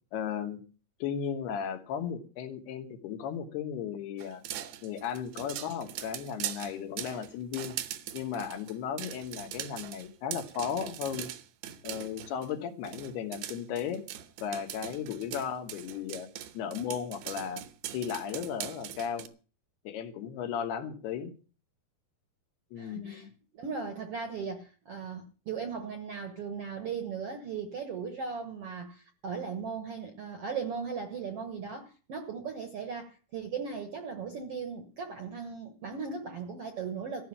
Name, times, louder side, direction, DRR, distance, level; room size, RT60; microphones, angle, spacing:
voice 1, 0.1-0.6 1.0-4.4 4.8-7.8 8.1-11.3 11.8-14.0 14.4-16.3 16.6-17.6 17.9-19.3 19.9-21.3 22.7-23.3, left 8 dB, 85° left, 3.5 m, -35 dB
sound 1, 4.2-12.5 12.8-19.3, right 12 dB, 90° right, 3.0 m, -41 dB
voice 2, 22.8-37.3, right 5 dB, 70° right, 1.4 m, -38 dB
14.5 x 6.1 x 9.9 m
omnidirectional pair, 4.5 m